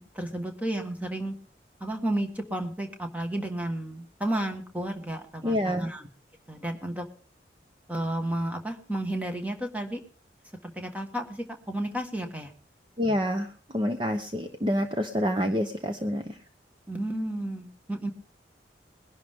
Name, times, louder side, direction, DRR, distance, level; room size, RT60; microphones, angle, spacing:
voice 1, 0.0-1.3 1.8-6.0 6.5-7.1 7.9-10.0 10.6-12.5 16.9-18.1, right 1 dB, 10° right, 5 dB, 1.5 m, -32 dB
voice 2, 5.4-5.9 13.0-16.4, equal, 25° right, 6 dB, 0.9 m, -28 dB
21.5 x 11.5 x 3.6 m, 0.40 s
head